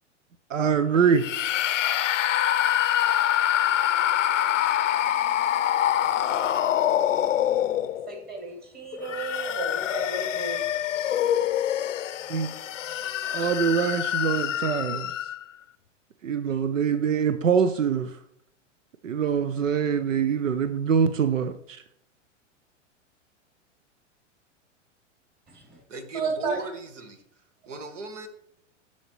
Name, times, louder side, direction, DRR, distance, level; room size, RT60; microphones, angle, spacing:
voice 1, 0.5-1.3 12.3-12.5 13.3-15.1 16.2-18.2 19.0-21.8, right 7 dB, 90° right, 11 dB, 0.6 m, -24 dB
sound 1, 1.2-8.2 8.9-15.4, left 11 dB, 80° left, 0.6 m, -25 dB
voice 2, 8.0-10.8 12.9-13.0 25.5-25.8 26.1-26.6, right 4 dB, 25° right, 1 dB, 2.7 m, -33 dB
voice 3, 25.9-27.2 27.7-28.3, right 3 dB, 70° right, 9 dB, 1.4 m, -37 dB
12.5 x 4.2 x 3.0 m, 0.73 s
hypercardioid pair, 105°, 37 cm